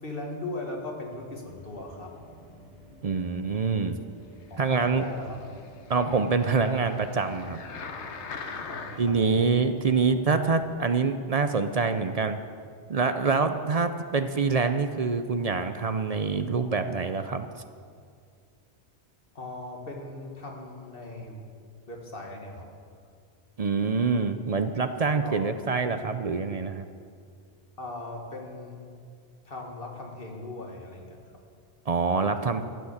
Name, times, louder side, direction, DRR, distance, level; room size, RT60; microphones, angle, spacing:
voice 1, 0.0-2.1 4.5-5.4 8.7-9.5 19.3-21.5 21.9-22.7 25.2-25.7 27.8-28.9 29.4-31.3, left 2 dB, 55° left, 0 dB, 2.1 m, -39 dB
sound 1, 1.4-10.7, equal, 65° right, 4.5 m, -52 dB
voice 2, 3.0-4.0 4.6-5.0 5.9-7.6 9.0-12.4 12.9-17.5 23.6-26.8 31.9-32.6, right 4 dB, 45° right, 9 dB, 0.6 m, -25 dB
sound 2, 4.7-9.2 9.8-9.9, left 5 dB, 80° left, 1.3 m, -42 dB
14.0 x 9.3 x 7.1 m, 2.2 s
omnidirectional pair, 1.1 m